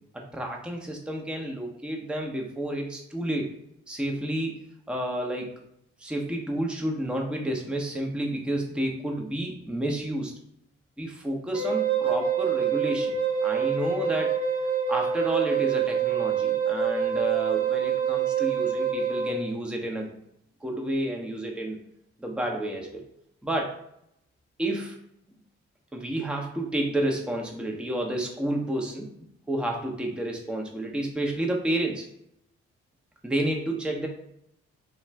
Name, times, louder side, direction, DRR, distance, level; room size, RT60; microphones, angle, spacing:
voice 1, 0.3-3.4 3.9-4.6 4.9-5.5 6.0-10.3 11.0-13.1 13.4-14.3 14.9-20.1 20.6-21.8 22.2-23.0 23.4-23.7 24.6-25.0 25.9-29.1 29.5-32.1 33.2-34.1, right 1 dB, 5° right, 1 dB, 0.7 m, -30 dB
Wind instrument woodwind instrument, 11.5-19.4, right 7 dB, 80° right, 0.6 m, -26 dB
3.4 x 2.4 x 3.2 m, 0.76 s
hypercardioid pair, 40°, 31 cm